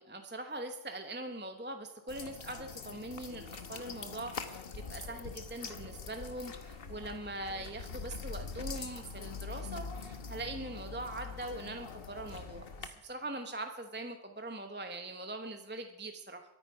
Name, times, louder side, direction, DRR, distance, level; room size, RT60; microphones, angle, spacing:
voice 1, 0.0-16.4, right 2 dB, 10° right, 5 dB, 0.9 m, -42 dB
sound 1, 2.1-12.9, left 5 dB, 65° left, 1.3 m, -44 dB
23.0 x 9.1 x 5.6 m, 0.99 s
omnidirectional pair, 1.1 m